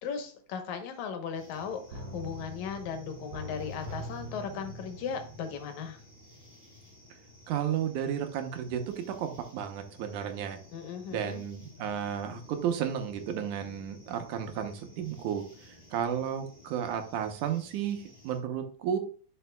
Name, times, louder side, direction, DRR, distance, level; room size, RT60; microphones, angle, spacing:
voice 1, 0.0-6.0 10.7-11.4, left 6 dB, 75° left, 6 dB, 2.4 m, -37 dB
sound 1, 1.3-18.4, left 2 dB, 20° left, 3.6 m, -55 dB
sound 2, 1.9-6.6 6.9-7.0, equal, 65° right, 1.8 m, -43 dB
voice 2, 7.5-10.6 11.1-19.0, right 9 dB, 85° right, 6 dB, 2.4 m, -33 dB
11.0 x 5.5 x 2.3 m, 0.44 s
omnidirectional pair, 3.4 m